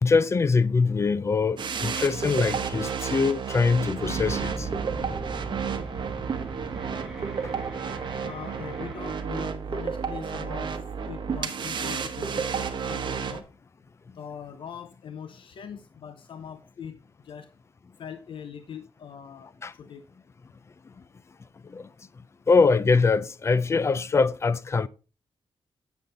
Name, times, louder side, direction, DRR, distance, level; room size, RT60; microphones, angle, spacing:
voice 1, 0.0-4.7 19.6-19.7 21.7-21.9 22.5-24.9, left 4 dB, 30° left, 0.4 m, -23 dB
sound 1, 1.6-13.4, right 6 dB, 55° right, 1.1 m, -31 dB
sound 2, 4.0-9.2, right 3 dB, 5° right, 2.0 m, -38 dB
voice 2, 8.2-10.7 11.0-13.5 14.1-17.0 17.2-17.5 18.0-19.5 19.8-20.0, left 7 dB, 65° left, 0.7 m, -41 dB
9.4 x 7.2 x 3.9 m
wide cardioid pair, 140°, 9 cm